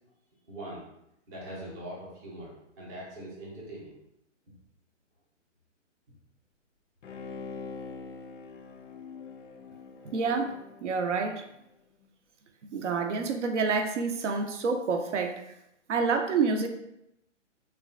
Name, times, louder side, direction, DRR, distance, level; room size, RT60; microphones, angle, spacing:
voice 1, 0.5-0.8 1.3-3.9, right 1 dB, 15° right, -5 dB, 0.4 m, -42 dB
Bowed string instrument, 7.0-11.6 12.0-12.1, left 4 dB, 80° left, 0.5 m, -44 dB
voice 2, 10.1-11.4 12.7-15.4 15.9-16.7, right 4 dB, 70° right, 5 dB, 0.5 m, -28 dB
3.0 x 2.2 x 2.4 m, 0.81 s
figure-of-eight pair, 130°, 37 cm